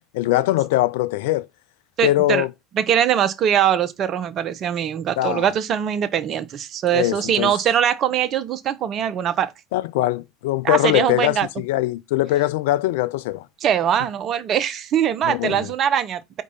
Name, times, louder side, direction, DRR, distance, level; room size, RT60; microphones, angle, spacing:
voice 1, 0.1-1.5 2.0-2.5 5.2-5.5 6.9-7.5 9.7-13.5 15.2-15.7, left 16 dB, 70° left, 0.3 m, -21 dB
voice 2, 2.0-2.4 2.7-9.5 10.6-11.5 13.6-16.4, right 9 dB, 45° right, 0.7 m, -22 dB
4.7 x 3.6 x 5.5 m
hypercardioid pair, 70°, 0 cm